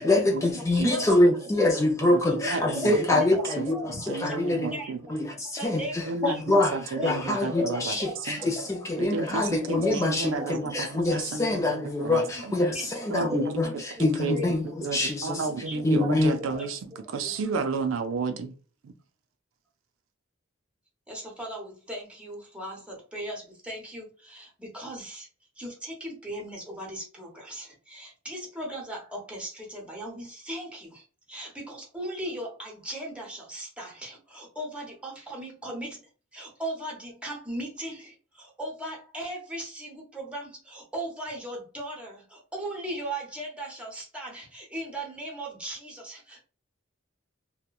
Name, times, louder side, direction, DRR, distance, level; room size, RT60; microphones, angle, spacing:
voice 1, 0.0-4.8 5.1-6.8 7.0-10.4 10.7-14.6 14.9-15.4 15.8-16.4, left 2 dB, 15° left, 0.3 m, -25 dB
voice 2, 0.9-1.2 2.4-2.6 2.8-3.8 4.2-4.4 4.7-5.2 5.6-6.4 6.9-8.3 8.6-8.7 9.0-9.1 9.6-10.8 12.3-13.7 14.0-14.5 15.5-17.3 21.1-25.3 25.6-36.0 36.3-46.4, right 1 dB, 5° right, 0.8 m, -38 dB
voice 3, 2.0-3.2 3.6-3.7 4.1-5.0 6.1-7.9 8.3-8.4 9.0-12.5 13.1-13.5 14.2-14.4 14.6-16.8 17.1-18.5 18.8-18.9, right 4 dB, 75° right, 0.4 m, -32 dB
2.9 x 2.2 x 2.2 m
head